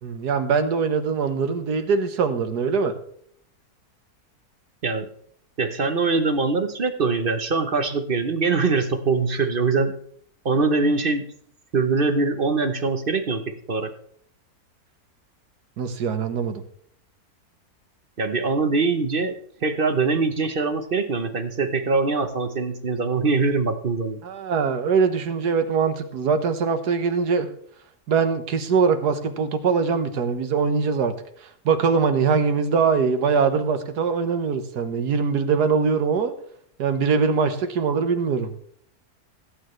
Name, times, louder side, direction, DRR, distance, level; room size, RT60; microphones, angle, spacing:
voice 1, 0.0-2.9 15.8-16.6 24.2-27.5 28.1-31.1 31.7-36.3 36.8-38.5, right 5 dB, 85° right, 9 dB, 1.7 m, -22 dB
voice 2, 5.6-9.9 10.4-11.2 11.7-13.4 13.7-13.9 18.2-19.3 19.6-24.2, right 4 dB, 40° right, 9 dB, 0.9 m, -23 dB
17.0 x 9.0 x 3.1 m, 0.64 s
omnidirectional pair, 1.7 m